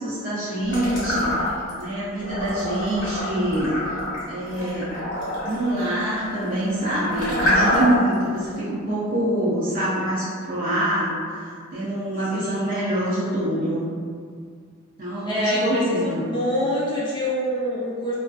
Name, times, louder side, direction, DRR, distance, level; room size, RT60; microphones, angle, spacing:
voice 1, 0.0-1.5 1.8-3.8 4.3-4.9 5.4-11.2 11.7-13.8 15.0-16.2, right 1 dB, 40° right, -10 dB, 0.4 m, -25 dB
sound 1, 0.7-1.8 2.2-8.1, left 1 dB, 55° left, 1.2 m, -26 dB
voice 2, 12.3-12.7 15.2-18.1, left 1 dB, 20° left, -8 dB, 0.5 m, -25 dB
2.4 x 2.3 x 2.4 m, 2.1 s
head